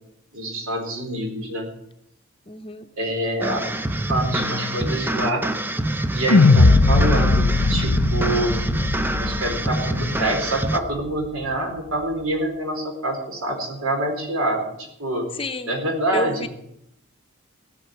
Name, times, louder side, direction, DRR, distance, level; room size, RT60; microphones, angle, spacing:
voice 1, 0.3-1.7 3.0-3.7 4.1-5.4 6.1-8.6 9.2-15.3 15.7-16.4, right 1 dB, 75° right, 3 dB, 4.4 m, -26 dB
voice 2, 2.5-2.9 15.3-15.7 16.1-16.5, left 2 dB, 25° left, 8 dB, 0.8 m, -29 dB
sound 1, 3.4-10.8, right 1 dB, 10° right, 0.6 m, -26 dB
sound 2, 6.3-10.7, left 3 dB, 90° left, 0.7 m, -18 dB
17.0 x 6.8 x 9.8 m, 0.77 s
head